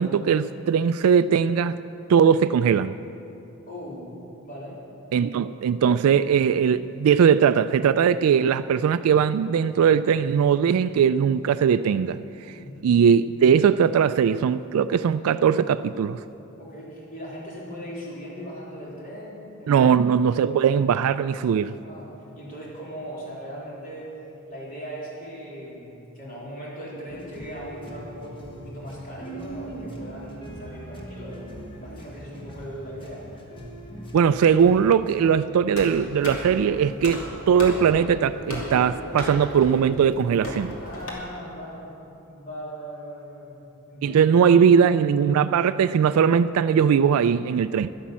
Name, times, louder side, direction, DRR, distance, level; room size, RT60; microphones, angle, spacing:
voice 1, 0.0-1.8 2.1-2.9 5.1-12.2 12.8-16.2 19.7-21.7 34.1-40.7 44.0-47.9, right 7 dB, 80° right, 12 dB, 0.3 m, -20 dB
voice 2, 3.7-4.1 4.4-4.8 12.5-12.9 16.6-19.9 21.8-24.1 24.5-33.2 40.8-41.9 42.2-43.6 43.9-44.3 44.6-44.8, equal, 40° left, -6 dB, 3.7 m, -39 dB
sound 1, 27.1-35.2, right 1 dB, 25° left, 1.3 m, -40 dB
sound 2, 35.7-41.1, equal, 70° left, 2.7 m, -35 dB
12.0 x 11.0 x 7.4 m, 2.9 s
head